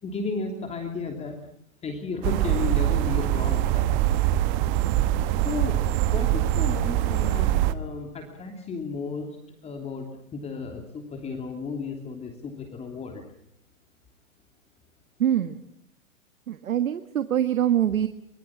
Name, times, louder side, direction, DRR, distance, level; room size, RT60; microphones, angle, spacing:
voice 1, 0.0-1.4 1.8-4.0 5.4-5.8 6.1-13.2, left 4 dB, 15° left, 4 dB, 2.9 m, -34 dB
sound 1, 2.2-7.7, right 13 dB, 30° right, 1.3 m, -23 dB
voice 2, 15.2-15.6 16.5-18.1, right 10 dB, 75° right, 11 dB, 1.7 m, -24 dB
24.5 x 23.5 x 7.4 m, 0.73 s
hypercardioid pair, 135°, 42 cm